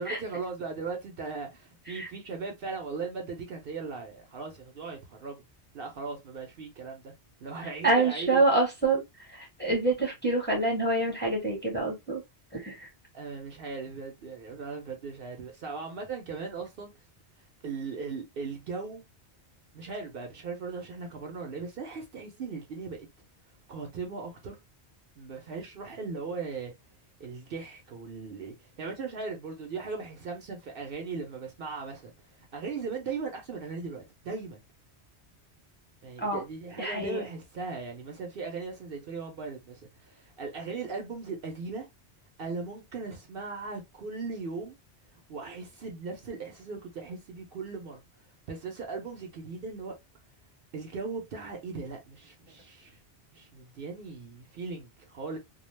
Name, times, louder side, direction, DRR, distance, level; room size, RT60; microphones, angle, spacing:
voice 1, 0.0-5.4 5.7-7.1 7.4-8.4 13.1-16.9 17.6-19.0 19.7-23.1 23.7-24.6 25.2-26.7 27.2-32.1 32.5-34.6 36.0-41.9 42.4-44.8 45.3-48.0 48.5-49.9 50.7-53.0 53.3-55.4, right 4 dB, 60° right, 0.8 m, -38 dB
voice 2, 7.6-9.0 9.3-12.2 12.5-12.9 36.2-36.4 36.8-37.2, right 2 dB, 10° left, 0.8 m, -27 dB
2.3 x 2.2 x 3.1 m
omnidirectional pair, 1.1 m